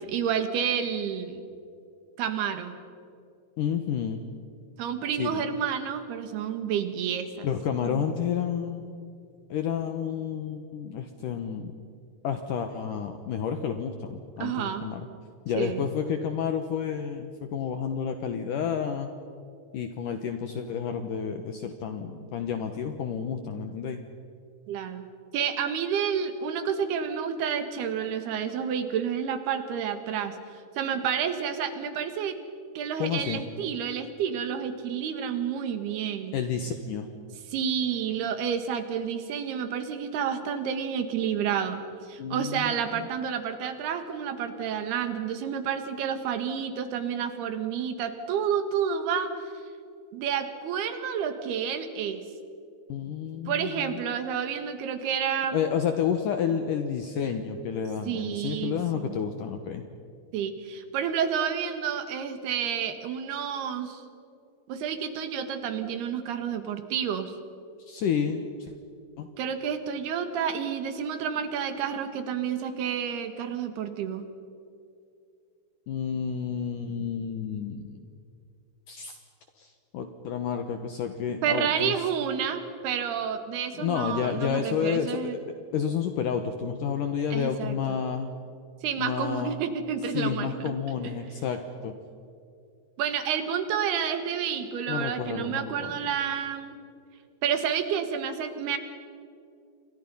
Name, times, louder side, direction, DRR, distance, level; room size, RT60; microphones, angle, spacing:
voice 1, 0.0-1.4 2.2-2.7 4.8-7.5 7.8-8.1 14.4-14.9 15.6-15.9 24.7-25.1 25.3-30.4 30.8-32.4 32.8-36.4 37.5-49.3 50.1-52.2 53.5-55.6 58.1-59.2 60.3-64.0 64.7-67.3 69.4-74.2 81.4-85.4 87.3-87.8 88.8-90.5 91.0-91.1 93.0-96.8 97.4-98.8, right 8 dB, 70° right, 8 dB, 3.5 m, -30 dB
voice 2, 3.6-4.2 5.2-5.4 7.4-8.9 9.5-11.7 12.2-15.1 15.5-19.1 19.7-24.0 33.0-33.4 36.3-37.1 42.2-43.1 52.9-54.0 55.5-59.8 67.8-68.7 69.2-69.3 75.9-78.1 78.9-79.2 79.6-82.1 83.7-85.4 85.7-88.3 89.0-89.6 90.1-92.0 94.9-95.9, left 7 dB, 70° left, 7 dB, 2.1 m, -30 dB
29.0 x 25.0 x 5.6 m, 2.5 s
omnidirectional pair, 5.1 m